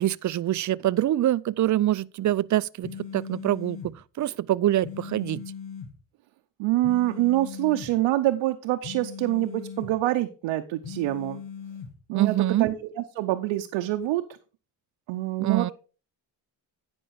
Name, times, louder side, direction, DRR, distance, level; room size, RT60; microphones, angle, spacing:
voice 1, 0.0-5.4 12.1-12.7 15.4-15.7, right 13 dB, 45° right, 0.4 m, -25 dB
sound 1, 2.8-3.9 4.8-5.9 6.8-7.9 8.8-9.9 10.8-11.9, left 7 dB, 80° left, 1.7 m, -39 dB
voice 2, 6.6-11.4 12.1-14.2 15.1-15.7, right 16 dB, 90° right, 0.7 m, -26 dB
10.0 x 5.3 x 4.6 m
cardioid pair, 70°, 44 cm